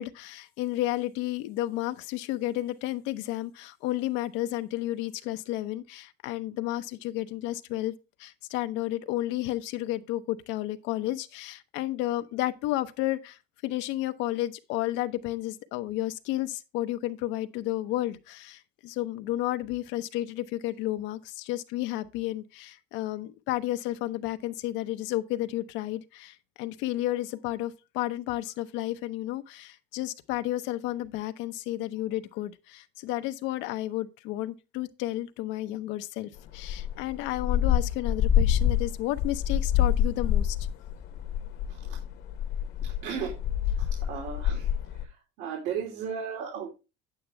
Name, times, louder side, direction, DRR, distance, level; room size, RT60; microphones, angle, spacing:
voice 1, 0.0-7.9 8.2-40.6, left 15 dB, 85° left, 0.8 m, -32 dB
sound 1, 36.5-45.0, left 10 dB, 60° left, 1.1 m, -27 dB
voice 2, 42.8-43.3 43.8-44.7 44.9-46.7, right 7 dB, 80° right, 3.0 m, -35 dB
8.9 x 8.5 x 3.3 m
cardioid pair, 170°, 19 cm